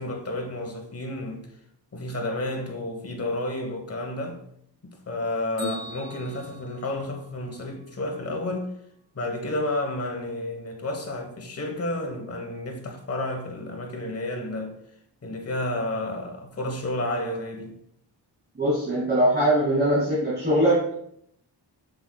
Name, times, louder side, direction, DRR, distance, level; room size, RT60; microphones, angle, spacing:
voice 1, 0.0-1.5 1.9-4.4 4.8-8.7 9.1-14.8 15.2-17.8, left 1 dB, 35° left, 1.2 m, -31 dB
Bell, 5.6-7.6, right 1 dB, 90° right, 2.7 m, -43 dB
voice 2, 18.6-21.1, right 1 dB, 25° right, 2.2 m, -22 dB
7.6 x 6.4 x 2.3 m
wide cardioid pair, 110°, 43 cm